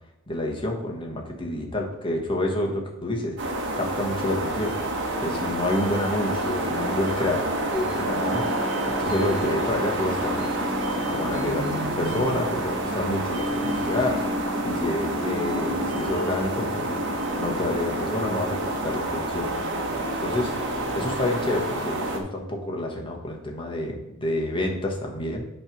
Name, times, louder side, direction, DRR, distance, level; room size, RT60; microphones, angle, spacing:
voice 1, 0.3-3.4 3.7-4.7 5.2-7.4 7.7-8.4 9.0-10.5 11.0-14.2 14.6-17.0 17.4-19.5 20.2-20.5 20.9-25.4, left 1 dB, 25° left, 1 dB, 1.2 m, -28 dB
sound 1, 3.4-22.2, right 1 dB, 55° right, 1.1 m, -28 dB
sound 2, 8.0-21.2, left 1 dB, 5° left, 0.4 m, -35 dB
8.7 x 3.3 x 6.0 m, 0.88 s
head